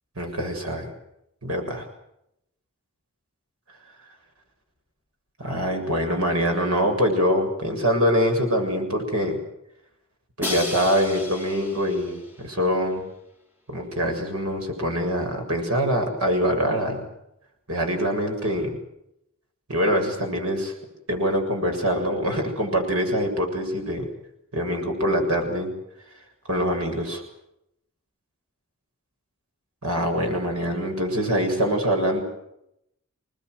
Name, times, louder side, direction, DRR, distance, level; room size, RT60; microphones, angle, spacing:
voice 1, 0.2-0.9 1.4-1.8 5.4-9.4 10.4-13.0 13.7-17.0 17.7-18.7 19.7-20.7 21.1-24.1 24.5-25.7 26.5-27.2 29.8-32.2, equal, 85° right, 3 dB, 7.2 m, -24 dB
Crash cymbal, 10.4-12.4, left 2 dB, 10° right, 3.1 m, -33 dB
29.0 x 20.0 x 8.0 m, 0.81 s
head